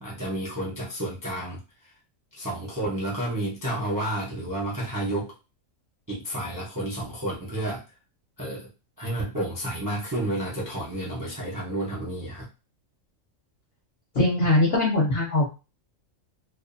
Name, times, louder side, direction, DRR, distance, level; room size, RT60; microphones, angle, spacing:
voice 1, 0.0-1.6 2.3-5.3 6.1-7.8 8.4-8.7 9.0-12.5, right 1 dB, 25° right, -4 dB, 0.4 m, -31 dB
voice 2, 14.1-15.5, left 2 dB, 55° left, -3 dB, 0.9 m, -21 dB
2.5 x 2.3 x 2.5 m, 0.29 s
omnidirectional pair, 1.4 m